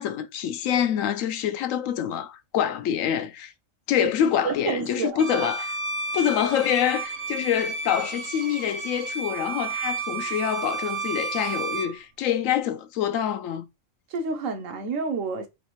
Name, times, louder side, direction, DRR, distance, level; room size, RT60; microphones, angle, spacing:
voice 1, 0.0-3.5 3.9-5.7 6.1-13.7, left 9 dB, 85° left, 1.0 m, -26 dB
voice 2, 4.0-5.5 14.1-15.5, right 4 dB, 80° right, 1.2 m, -30 dB
Bowed string instrument, 5.2-12.0, right 4 dB, 60° right, 1.0 m, -32 dB
4.1 x 3.0 x 3.0 m
omnidirectional pair, 1.3 m